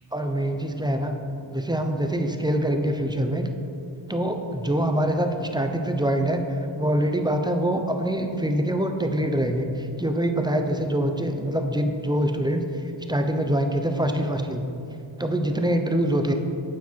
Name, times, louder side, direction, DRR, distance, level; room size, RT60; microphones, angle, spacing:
voice 1, 0.1-1.1 1.5-3.5 4.1-6.4 6.7-14.6 15.2-16.3, right 1 dB, 10° right, 5 dB, 0.8 m, -24 dB
9.1 x 8.5 x 4.6 m, 2.7 s
wide cardioid pair, 80°, 48 cm